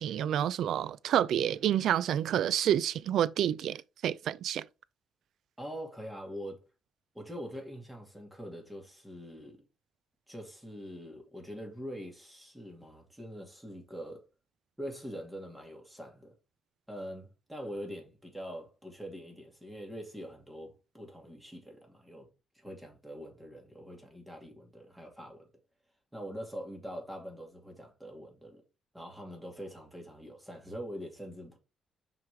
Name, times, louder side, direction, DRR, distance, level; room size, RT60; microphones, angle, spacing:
voice 1, 0.0-4.6, right 10 dB, 75° right, 0.4 m, -29 dB
voice 2, 5.6-6.6 7.1-9.6 10.3-14.2 14.8-16.3 16.9-22.3 22.5-25.5 26.1-28.6 28.9-31.6, equal, 5° right, 2.5 m, -44 dB
5.7 x 4.9 x 3.5 m
cardioid pair, 90°, 0 cm